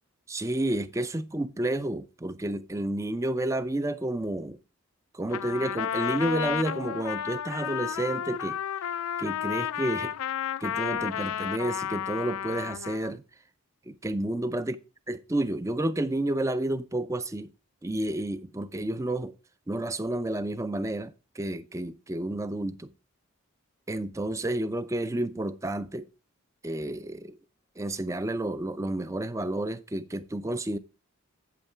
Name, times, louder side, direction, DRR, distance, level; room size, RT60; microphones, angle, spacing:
voice 1, 0.3-4.6 5.1-8.6 9.2-10.1 10.6-13.2 13.9-14.8 15.1-17.5 17.8-19.3 19.7-22.9 23.9-26.1 26.6-27.4 27.8-30.8, right 1 dB, 15° right, 0.4 m, -30 dB
Trumpet, 5.3-13.1, left 9 dB, 75° left, 0.4 m, -32 dB
8.3 x 8.2 x 3.5 m
head